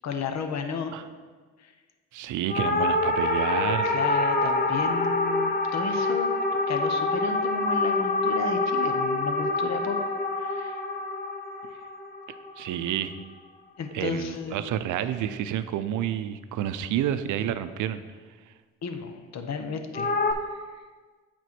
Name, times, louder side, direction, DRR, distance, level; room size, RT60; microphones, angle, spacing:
voice 1, 0.0-0.9 1.6-1.7 3.8-6.3 6.7-10.0 10.4-10.8 13.8-14.6 18.8-20.1 20.5-20.8, left 5 dB, 50° left, 6 dB, 1.0 m, -33 dB
voice 2, 2.1-3.9 12.6-13.1 13.9-18.0, right 10 dB, 65° right, 12 dB, 0.6 m, -29 dB
sound 1, 2.5-13.0 19.9-20.3, left 2 dB, 30° left, 1.1 m, -26 dB
8.2 x 4.4 x 6.0 m, 1.5 s
supercardioid pair, 65°, 33 cm